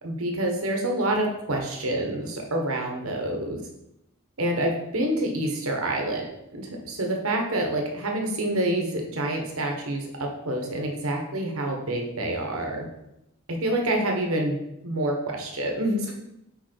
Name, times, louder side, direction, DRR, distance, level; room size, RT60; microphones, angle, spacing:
voice 1, 0.0-3.6 4.4-6.2 6.6-12.9 13.6-14.6 14.8-16.1, right 1 dB, 75° right, 1 dB, 1.3 m, -27 dB
5.3 x 4.9 x 4.5 m, 0.85 s
head